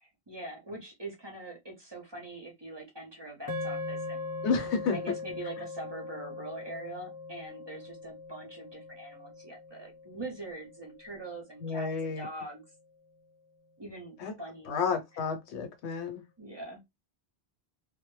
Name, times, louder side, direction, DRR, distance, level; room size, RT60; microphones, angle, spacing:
voice 1, 0.0-4.2 4.9-11.9 12.2-12.6 13.8-14.8 16.4-16.8, right 2 dB, 30° right, 0.5 m, -43 dB
sound 1, 3.5-11.9, left 3 dB, 20° left, 0.7 m, -41 dB
voice 2, 4.4-5.0 11.6-12.3 14.2-14.3 14.7-16.2, left 5 dB, 90° left, 1.0 m, -31 dB
2.1 x 2.1 x 3.0 m
omnidirectional pair, 1.1 m